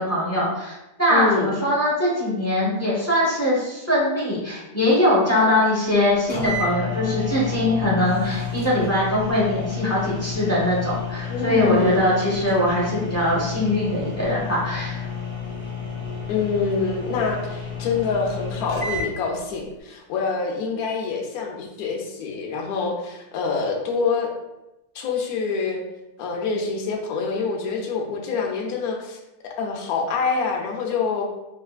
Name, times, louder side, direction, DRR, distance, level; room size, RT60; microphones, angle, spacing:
voice 1, 0.0-15.0, left 1 dB, 15° left, -7 dB, 0.5 m, -22 dB
voice 2, 1.1-1.5 11.3-12.1 16.3-24.3 24.9-25.8 26.2-29.2 29.6-31.2, left 5 dB, 70° left, 1 dB, 1.0 m, -26 dB
sound 1, 5.9-6.0 6.3-19.1, left 5 dB, 35° left, 1.1 m, -30 dB
3.4 x 3.1 x 2.3 m, 0.94 s
omnidirectional pair, 1.7 m